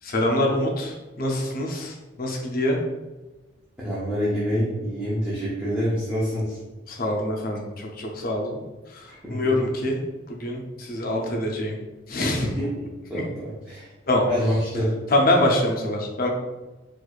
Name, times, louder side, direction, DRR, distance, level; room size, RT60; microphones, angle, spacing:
voice 1, 0.0-2.8 6.9-8.6 8.9-10.0 10.3-11.8 12.1-12.6 13.1-13.2 14.1-14.2 15.1-16.3, left 1 dB, 50° left, 0 dB, 0.6 m, -25 dB
voice 2, 3.8-6.6 9.1-9.5 12.6-13.9 14.2-15.0, equal, 5° right, -10 dB, 0.7 m, -27 dB
4.4 x 2.4 x 2.4 m, 1.1 s
head